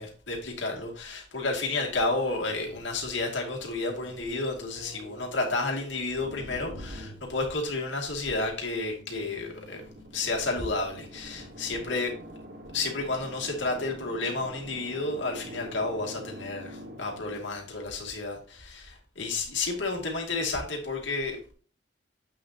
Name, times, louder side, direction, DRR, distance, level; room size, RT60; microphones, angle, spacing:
voice 1, 0.0-9.8 10.1-12.1 12.7-21.4, left 3 dB, 75° left, 2.5 m, -31 dB
sound 1, 2.5-5.5 6.2-7.9 9.0-17.4, equal, 85° right, 3.8 m, -46 dB
8.3 x 6.6 x 2.9 m
head